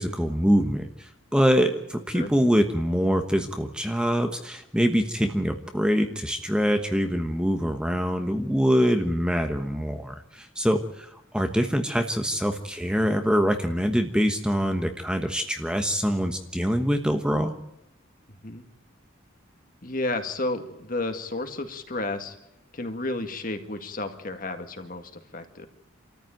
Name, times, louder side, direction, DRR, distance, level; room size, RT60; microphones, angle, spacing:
voice 1, 0.0-17.5, equal, 5° right, 5 dB, 1.2 m, -24 dB
voice 2, 19.8-22.4 22.7-25.7, left 2 dB, 45° left, 6 dB, 2.0 m, -32 dB
27.0 x 14.0 x 9.2 m, 0.91 s
head